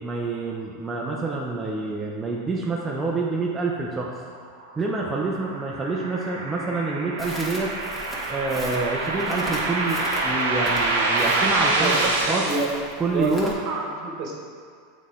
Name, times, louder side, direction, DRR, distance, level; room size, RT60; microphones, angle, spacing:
voice 1, 0.0-4.1 4.8-7.7 8.3-12.0 12.3-12.5 13.0-13.6, right 3 dB, 15° right, -3 dB, 0.7 m, -27 dB
sound 1, 4.7-12.6, right 2 dB, 80° right, 0.9 m, -26 dB
Crackle, 7.2-13.5, equal, 10° left, 1.5 m, -37 dB
voice 2, 11.8-12.7 13.1-14.3, right 3 dB, 50° right, -1 dB, 1.3 m, -28 dB
7.4 x 4.2 x 3.7 m, 2.2 s
hypercardioid pair, 110°, 0 cm